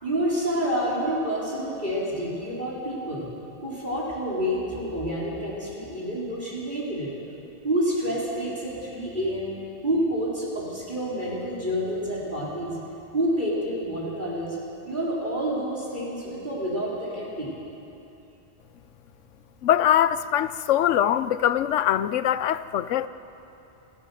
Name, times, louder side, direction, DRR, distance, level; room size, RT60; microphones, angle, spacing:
voice 1, 0.0-3.3 3.6-7.2 7.6-9.5 9.8-12.8 13.1-14.6 14.8-17.5, equal, 40° right, 3.9 m, -28 dB
voice 2, 19.6-23.1, left 10 dB, 90° left, 1.0 m, -22 dB
27.5 x 15.0 x 6.9 m
omnidirectional pair, 1.2 m